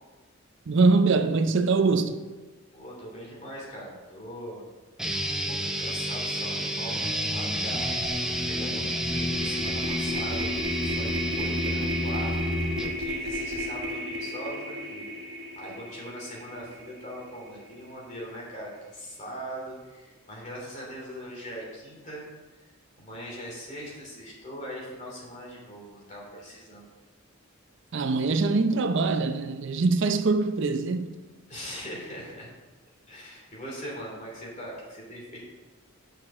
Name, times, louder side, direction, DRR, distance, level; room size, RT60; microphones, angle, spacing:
voice 1, 0.7-2.2 27.9-31.1, right 3 dB, 55° right, 0.5 m, -23 dB
voice 2, 2.7-4.6 5.0-7.9 8.2-10.5 10.7-12.3 12.8-22.2 23.0-26.9 31.5-32.5 33.1-35.4, equal, 35° left, 3.0 m, -41 dB
sound 1, 5.0-13.0, equal, ahead, 0.5 m, -29 dB
sound 2, 7.1-7.3 7.6-17.8, right 1 dB, 85° right, 1.4 m, -35 dB
6.6 x 6.1 x 6.3 m
head